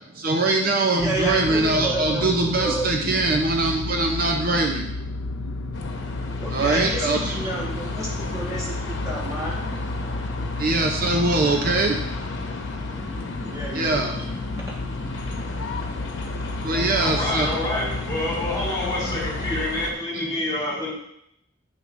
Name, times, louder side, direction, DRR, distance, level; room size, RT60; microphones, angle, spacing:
voice 1, 0.1-4.9 6.5-7.3 10.6-12.1 13.7-14.3 16.6-17.5 20.1-20.2, right 2 dB, 45° right, 3 dB, 0.6 m, -22 dB
sound 1, 1.0-19.7, left 3 dB, 80° left, 0.4 m, -32 dB
voice 2, 1.0-3.2 6.4-9.6 11.9-12.0 13.5-14.2 16.7-17.4, right 1 dB, 15° right, -5 dB, 1.4 m, -31 dB
sound 2, 5.7-19.9, left 2 dB, 60° left, 1.0 m, -34 dB
voice 3, 16.7-20.9, left 1 dB, 20° left, -6 dB, 2.7 m, -28 dB
8.9 x 6.7 x 2.6 m, 0.77 s
head